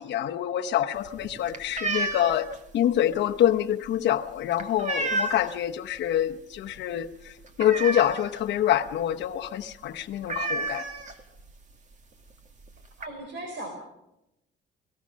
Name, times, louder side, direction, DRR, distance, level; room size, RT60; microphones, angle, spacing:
voice 1, 0.0-2.5 2.7-7.1 7.6-10.8, left 11 dB, 65° left, 0.9 m, -26 dB
sound 1, 1.0-5.7 6.1-6.4 6.7-6.8 7.1-8.5 8.9-9.0 9.2-9.4 9.7-9.8 10.2-11.5 12.3-12.4 12.6-13.1, right 3 dB, 40° right, 2.1 m, -32 dB
voice 2, 13.0-13.7, right 1 dB, 70° right, 4.5 m, -37 dB
29.0 x 18.0 x 6.3 m
cardioid pair, 140°, 19 cm